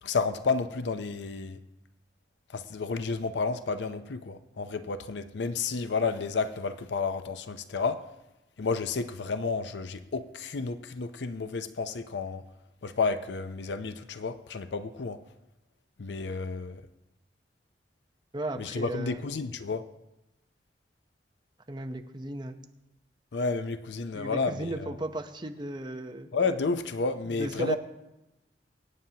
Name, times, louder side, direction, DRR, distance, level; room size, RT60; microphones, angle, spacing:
voice 1, 0.0-1.6 2.5-8.0 8.6-12.4 12.8-15.2 16.0-16.8 18.6-19.8 23.3-24.9 26.3-27.8, left 4 dB, 80° left, 0.6 m, -31 dB
voice 2, 18.3-19.2 21.7-22.6 24.1-26.3 27.3-27.8, right 1 dB, 25° right, 0.8 m, -35 dB
24.0 x 9.1 x 2.9 m
head